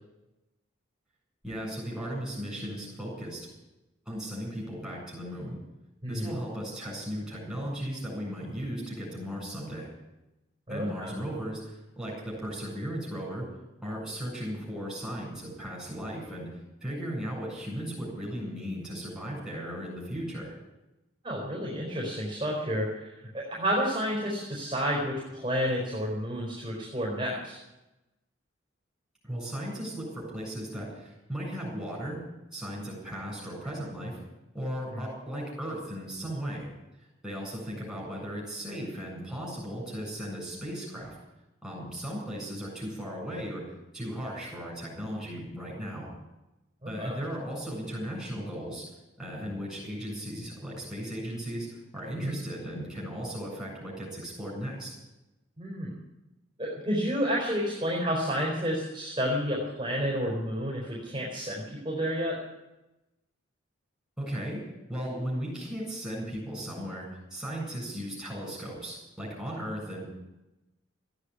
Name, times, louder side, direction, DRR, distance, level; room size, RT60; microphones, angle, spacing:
voice 1, 1.4-3.5 4.1-5.6 6.1-9.9 10.7-13.5 13.8-16.5 16.8-20.5 29.2-32.2 32.5-34.2 34.5-36.7 37.2-41.2 41.6-43.6 43.9-46.1 46.8-48.8 49.2-54.9 64.2-64.6 64.9-70.1, equal, ahead, -4 dB, 7.9 m, -36 dB
voice 2, 10.7-11.1 21.2-27.6 34.9-35.1 46.8-47.2 52.2-52.4 55.6-56.0 56.6-62.4, equal, 20° right, -4 dB, 4.3 m, -30 dB
15.0 x 10.0 x 9.7 m, 0.97 s
head